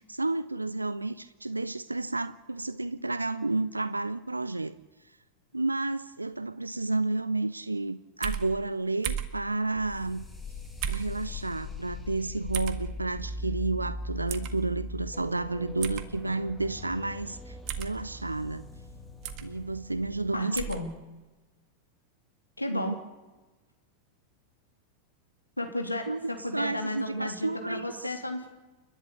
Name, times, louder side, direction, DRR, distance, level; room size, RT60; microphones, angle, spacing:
voice 1, 0.0-4.7 5.5-10.3 10.9-18.7 19.4-20.6 22.7-23.0 26.1-28.2, right 2 dB, 85° right, 16 dB, 0.6 m, -31 dB
sound 1, 8.2-8.5 9.0-9.4 10.8-11.1 12.5-12.8 14.3-14.5 15.8-16.1 17.7-17.9 19.2-19.5 20.5-20.8, right 9 dB, 40° right, 1.7 m, -33 dB
sound 2, 9.8-20.4, left 2 dB, 5° left, 2.9 m, -41 dB
voice 2, 20.3-20.9 22.6-22.9 25.6-28.5, left 1 dB, 85° left, 3 dB, 3.1 m, -33 dB
30.0 x 11.5 x 8.3 m, 1.2 s
figure-of-eight pair, 90°, 0 cm